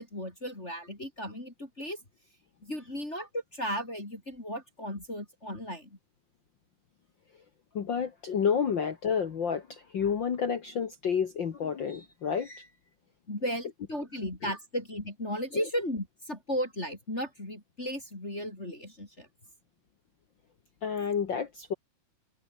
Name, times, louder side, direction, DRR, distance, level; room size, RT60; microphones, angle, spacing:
voice 1, 0.0-2.0 2.6-6.0 13.3-19.3, equal, 15° left, 4.3 m, -35 dB
voice 2, 7.7-12.7 14.4-14.5 15.5-15.6 20.8-21.7, left 7 dB, 80° left, 1.0 m, -30 dB
omnidirectional pair, 4.6 m